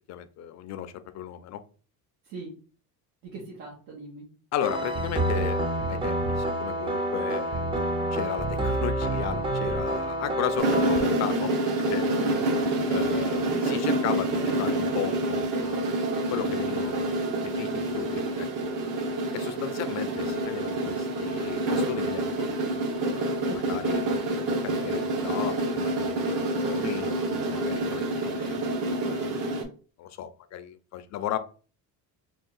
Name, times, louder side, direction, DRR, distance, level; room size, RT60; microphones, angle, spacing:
voice 1, 0.1-1.6 4.5-5.6 5.9-12.1 12.9-15.8 16.3-17.1 17.4-18.7 19.3-22.5 23.0-24.2 24.6-28.5 29.0-29.3 30.0-31.4, left 10 dB, 45° left, 0.4 m, -35 dB
voice 2, 3.2-4.3 12.2-12.3 23.4-24.0, right 3 dB, 85° right, 1.3 m, -41 dB
sound 1, 4.6-11.0, right 1 dB, 15° right, 0.4 m, -28 dB
sound 2, 10.6-29.6, right 1 dB, 55° right, 0.9 m, -27 dB
3.6 x 2.4 x 3.9 m
cardioid pair, 150°, 38 cm